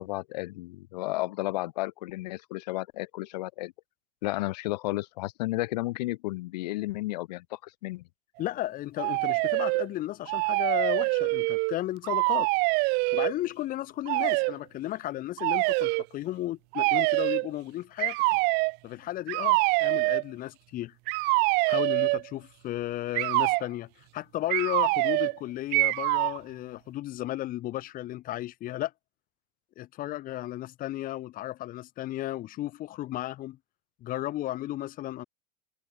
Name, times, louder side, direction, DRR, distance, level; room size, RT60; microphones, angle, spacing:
voice 1, 0.0-3.7 4.2-8.0, left 19 dB, 75° left, 1.2 m, -33 dB
voice 2, 8.4-12.5 13.1-18.2 18.8-20.9 21.7-28.9 29.8-33.6 34.0-35.2, left 15 dB, 40° left, 1.5 m, -34 dB
sound 1, 9.0-9.9 10.3-11.8 12.0-13.3 14.1-14.5 15.4-16.0 16.7-17.5 18.0-18.8 19.3-20.2 21.1-22.3 23.1-23.7 24.5-25.4 25.7-26.4, right 28 dB, 50° right, 0.5 m, -25 dB
open air
supercardioid pair, 110°, 21 cm